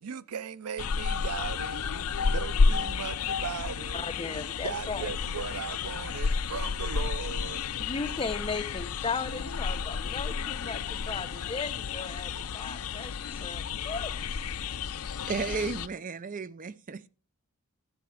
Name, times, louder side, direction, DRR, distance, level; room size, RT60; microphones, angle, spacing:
voice 1, 0.0-1.9 2.3-4.1 4.6-7.6, right 7 dB, 85° right, 0.5 m, -38 dB
sound 1, 0.8-15.9, left 5 dB, 75° left, 0.5 m, -31 dB
voice 2, 3.9-5.1 7.8-14.1, left 4 dB, 25° left, 0.8 m, -36 dB
voice 3, 15.3-17.1, right 4 dB, 40° right, 0.5 m, -33 dB
12.5 x 7.1 x 4.8 m
head